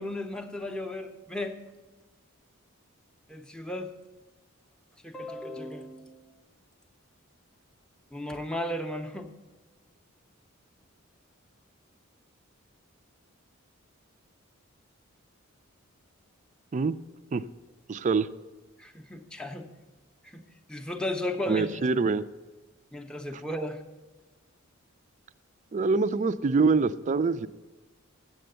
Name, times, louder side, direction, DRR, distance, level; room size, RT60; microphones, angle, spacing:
voice 1, 0.0-1.6 3.3-3.9 5.0-6.3 8.1-9.3 18.8-19.7 20.2-21.9 22.9-23.8, left 1 dB, 5° left, 4 dB, 0.6 m, -35 dB
voice 2, 17.9-18.3 21.5-22.2 25.7-27.5, right 4 dB, 35° right, 14 dB, 0.3 m, -25 dB
7.7 x 7.6 x 7.9 m, 1.2 s
head